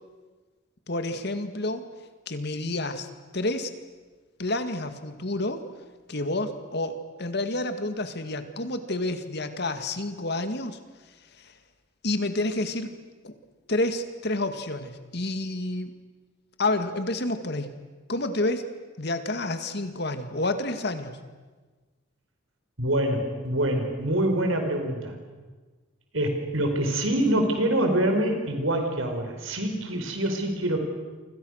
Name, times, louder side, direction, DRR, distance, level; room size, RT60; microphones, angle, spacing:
voice 1, 0.9-1.8 2.3-3.1 3.3-3.7 4.4-5.6 6.1-10.8 11.4-11.5 12.0-12.9 13.2-13.3 13.7-15.9 16.6-17.7 18.1-18.7 19.0-21.2, left 2 dB, 55° left, 9 dB, 2.1 m, -29 dB
voice 2, 22.8-25.1 26.1-30.8, right 1 dB, 85° right, 5 dB, 5.0 m, -25 dB
29.0 x 26.0 x 6.6 m, 1.3 s
head